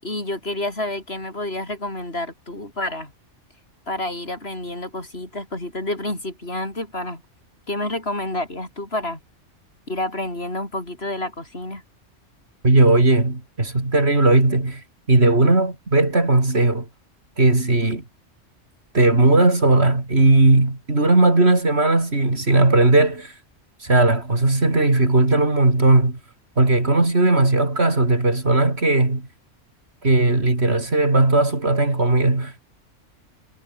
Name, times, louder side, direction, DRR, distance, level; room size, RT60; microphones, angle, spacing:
voice 1, 0.0-3.1 3.9-7.2 7.7-9.2 9.9-11.8, left 1 dB, 55° left, 7.1 m, -29 dB
voice 2, 12.6-14.8 15.1-16.9 17.4-18.0 18.9-23.3 23.8-26.2 26.6-29.3 30.0-32.7, right 2 dB, 55° right, 4.5 m, -17 dB
omnidirectional pair, 1.3 m